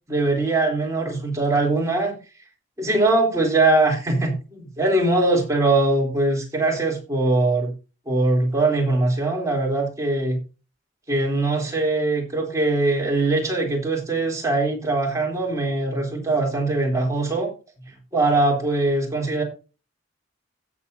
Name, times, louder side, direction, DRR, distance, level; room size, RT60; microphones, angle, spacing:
voice 1, 0.1-2.2 2.8-7.7 8.1-10.4 11.1-17.5 18.1-19.4, right 2 dB, 15° right, -1 dB, 3.4 m, -21 dB
16.5 x 7.4 x 2.7 m, 0.33 s
head